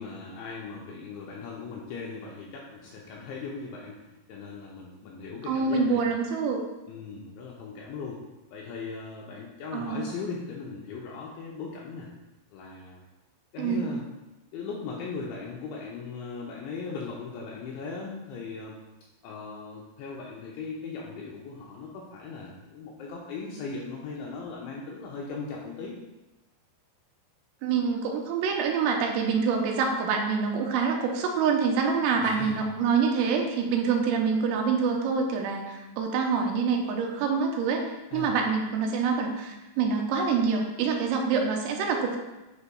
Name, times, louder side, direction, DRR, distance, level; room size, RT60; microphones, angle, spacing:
voice 1, 0.0-4.0 4.3-6.1 6.9-8.2 8.5-12.1 12.5-13.0 13.5-14.0 14.5-18.8 19.2-25.9 32.2-32.7 38.1-38.3, left 4 dB, 80° left, -3 dB, 2.6 m, -38 dB
voice 2, 5.5-6.6 9.7-10.1 13.6-13.9 27.6-37.9 38.1-42.2, right 5 dB, 85° right, 2 dB, 3.3 m, -26 dB
9.6 x 5.5 x 2.3 m, 1.0 s
omnidirectional pair, 6.0 m